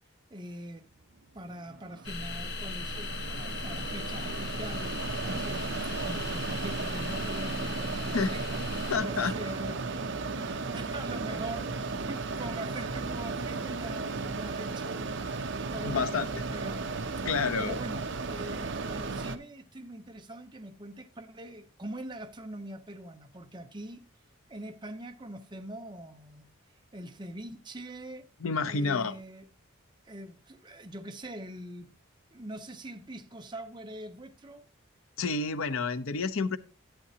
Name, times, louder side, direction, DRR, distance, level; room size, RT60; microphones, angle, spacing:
voice 1, 0.3-0.8 1.3-5.7 6.0-17.3 17.6-24.0 24.5-26.5 26.9-28.3 28.6-29.4 30.1-31.9 32.3-34.6, right 1 dB, 20° right, 0.7 m, -43 dB
Mechanisms, 1.4-19.4, right 3 dB, 55° right, 0.6 m, -35 dB
sound 1, 2.0-9.0, left 3 dB, 50° left, 1.1 m, -37 dB
voice 2, 8.9-9.4 15.7-16.3 17.2-17.8 28.4-29.1 35.2-36.6, left 4 dB, 75° left, 0.7 m, -29 dB
11.0 x 8.4 x 2.8 m
head